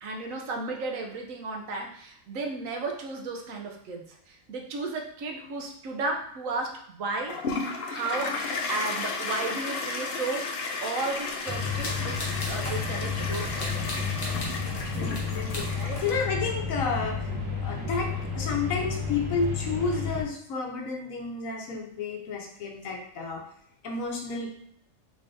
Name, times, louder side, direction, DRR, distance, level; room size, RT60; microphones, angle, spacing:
voice 1, 0.0-10.5 10.8-14.1 15.8-16.0 17.8-17.9 18.5-18.6, right 3 dB, 80° right, 2 dB, 1.1 m, -34 dB
Toilet flush, 7.3-16.5, left 4 dB, 60° left, 0.6 m, -34 dB
sound 1, 11.5-20.2, left 5 dB, 20° right, 0.7 m, -32 dB
sound 2, 11.8-12.9 13.3-16.2, left 1 dB, 35° left, 0.9 m, -39 dB
voice 2, 14.9-17.3 17.6-23.4 23.8-24.6, left 4 dB, 85° left, 2 dB, 1.2 m, -31 dB
3.8 x 3.3 x 2.6 m, 0.71 s
omnidirectional pair, 1.4 m